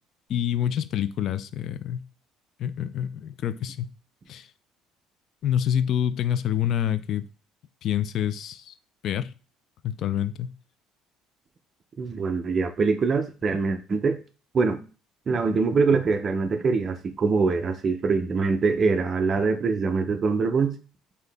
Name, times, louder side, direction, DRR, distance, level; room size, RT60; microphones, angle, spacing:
voice 1, 0.3-2.1 2.6-3.9 4.3-4.5 5.4-7.3 7.8-8.7 9.0-9.3 9.8-10.5, left 10 dB, 55° left, 0.3 m, -27 dB
voice 2, 12.0-14.2 14.5-14.8 15.3-20.8, right 4 dB, 30° right, 0.5 m, -24 dB
3.9 x 2.7 x 3.4 m
cardioid pair, 135°, 0 cm